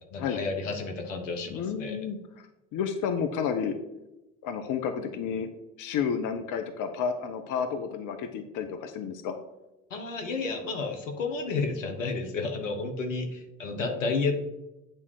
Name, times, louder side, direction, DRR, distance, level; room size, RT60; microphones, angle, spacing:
voice 1, 0.1-2.0 9.9-14.4, left 4 dB, 90° left, 5 dB, 1.2 m, -31 dB
voice 2, 1.5-2.5 2.7-3.7 4.4-5.5 5.8-9.3, left 7 dB, 55° left, 7 dB, 1.0 m, -31 dB
9.0 x 3.6 x 6.4 m, 0.95 s
hypercardioid pair, 65°, 37 cm